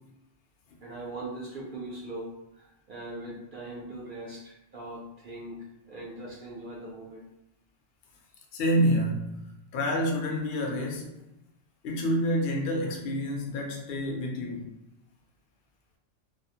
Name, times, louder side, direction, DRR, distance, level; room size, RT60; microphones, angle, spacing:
voice 1, 0.8-2.3 2.6-5.6 5.9-7.2, right 2 dB, 60° right, -4 dB, 0.5 m, -40 dB
voice 2, 8.5-9.4 9.7-11.1 11.8-14.6, equal, 60° left, 1 dB, 0.7 m, -28 dB
2.3 x 2.0 x 2.7 m, 0.89 s
omnidirectional pair, 1.3 m